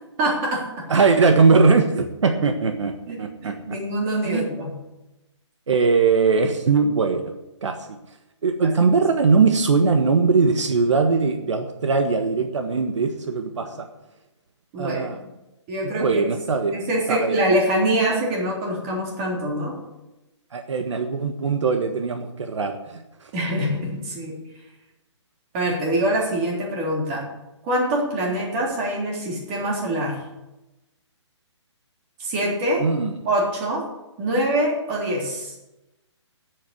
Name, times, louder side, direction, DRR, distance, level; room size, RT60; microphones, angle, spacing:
voice 1, 0.2-0.6 3.1-4.7 8.6-8.7 13.6-13.7 14.7-15.1 15.7-16.3 16.7-19.8 23.3-24.3 25.5-27.2 27.6-30.2 32.2-32.8 33.2-33.8 34.2-35.5, right 1 dB, 25° right, -2 dB, 3.5 m, -24 dB
voice 2, 0.9-3.5 4.2-4.5 5.7-7.3 7.6-8.0 8.4-13.9 14.8-15.2 15.8-16.8 17.1-17.4 20.5-23.3 32.8-33.1, right 4 dB, 75° right, 6 dB, 1.5 m, -20 dB
10.5 x 8.5 x 8.2 m, 0.98 s
hypercardioid pair, 165°, 15 cm